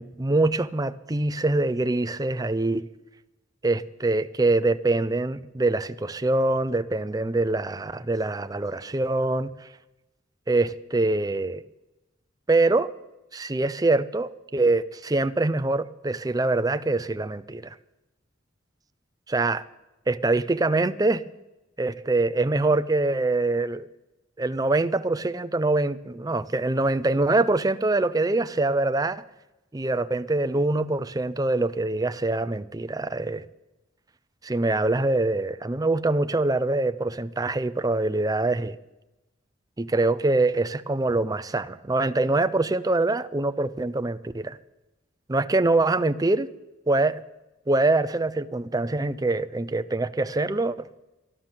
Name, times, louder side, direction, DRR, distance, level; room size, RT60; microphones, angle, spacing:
voice 1, 0.0-2.8 3.6-9.5 10.5-11.6 12.5-12.9 13.3-17.6 19.3-19.6 20.1-21.2 21.8-23.9 24.4-29.2 29.7-33.4 34.4-38.8 39.8-44.6 45.3-46.5 46.9-47.2 47.7-50.9, right 2 dB, 20° right, 12 dB, 0.5 m, -24 dB
13.5 x 11.5 x 7.3 m, 0.99 s
head